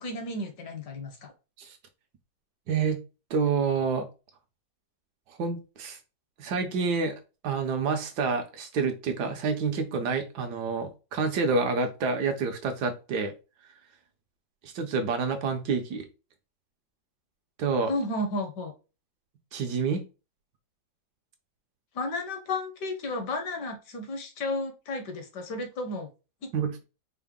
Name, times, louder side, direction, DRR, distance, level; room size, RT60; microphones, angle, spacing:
voice 1, 0.0-1.3 17.9-18.7 21.9-26.1 26.4-26.5, left 2 dB, 70° left, 5 dB, 1.4 m, -33 dB
voice 2, 2.7-3.0 3.3-4.1 5.4-6.0 6.4-7.2 7.4-13.3 14.6-16.1 17.6-17.9 19.5-20.0 26.5-26.7, right 5 dB, 70° right, 6 dB, 1.2 m, -28 dB
4.6 x 2.1 x 3.5 m, 0.30 s
omnidirectional pair, 2.0 m